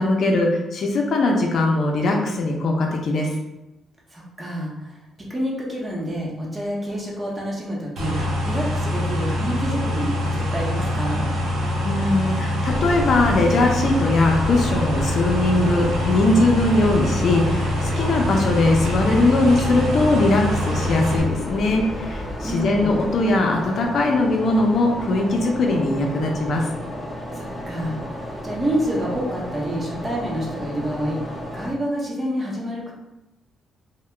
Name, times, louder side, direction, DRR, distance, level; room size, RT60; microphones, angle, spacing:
voice 1, 0.0-3.3 11.8-26.7, left 2 dB, 60° left, 1 dB, 0.6 m, -20 dB
voice 2, 4.1-11.3 22.4-23.0 27.3-32.9, equal, 25° right, -4 dB, 0.9 m, -28 dB
sound 1, 8.0-21.2, left 1 dB, 85° right, 0.8 m, -24 dB
sound 2, 12.7-31.7, equal, 10° left, 0.9 m, -32 dB
2.8 x 2.2 x 3.3 m, 0.96 s
cardioid pair, 90°, 0 cm